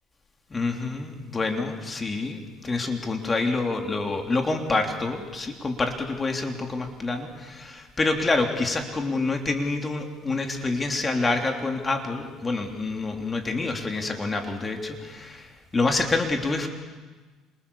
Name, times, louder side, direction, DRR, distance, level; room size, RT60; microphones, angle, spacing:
voice 1, 0.5-16.7, left 3 dB, 20° left, 3 dB, 3.2 m, -27 dB
28.0 x 28.0 x 7.1 m, 1.3 s
cardioid pair, 115°, 0 cm